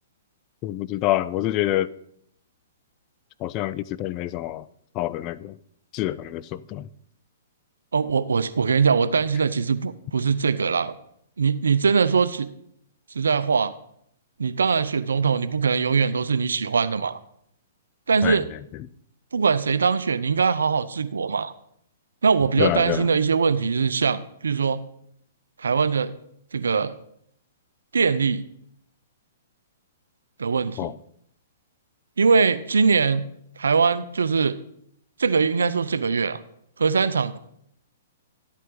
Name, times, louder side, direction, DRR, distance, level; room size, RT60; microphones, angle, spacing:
voice 1, 0.6-1.9 3.4-4.6 4.9-5.6 5.9-6.9 18.2-18.4 22.6-23.1 30.8-30.9, left 14 dB, 35° left, 0.4 m, -26 dB
voice 2, 7.9-10.9 11.4-12.5 13.1-13.7 14.4-17.2 18.1-18.5 19.3-21.5 22.2-24.8 25.6-26.1 26.5-26.9 27.9-28.4 30.4-30.9 32.2-33.2 33.6-34.6 35.2-36.4 36.8-37.4, right 5 dB, 90° right, 0.6 m, -22 dB
12.0 x 8.4 x 3.9 m
hypercardioid pair, 135°, 0 cm